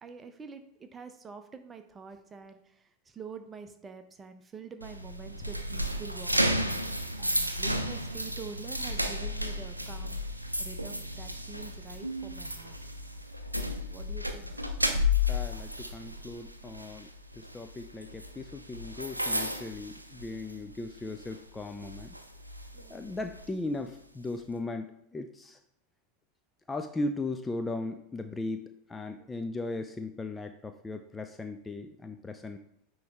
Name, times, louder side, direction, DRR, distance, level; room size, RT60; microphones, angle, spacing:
voice 1, 0.0-6.5 7.2-10.2 10.6-12.8 13.7-14.5 20.3-20.6 22.7-23.0 29.2-29.4, right 5 dB, 20° right, 8 dB, 0.8 m, -46 dB
sound 1, 4.8-20.7 21.1-21.3 21.8-23.5, left 1 dB, 90° right, 0.5 m, -33 dB
voice 2, 15.3-17.1 17.4-22.2 22.9-25.6 26.7-28.6 28.9-32.6, left 2 dB, 15° left, 6 dB, 0.5 m, -37 dB
9.3 x 3.1 x 3.6 m, 0.76 s
figure-of-eight pair, 85°, 0 cm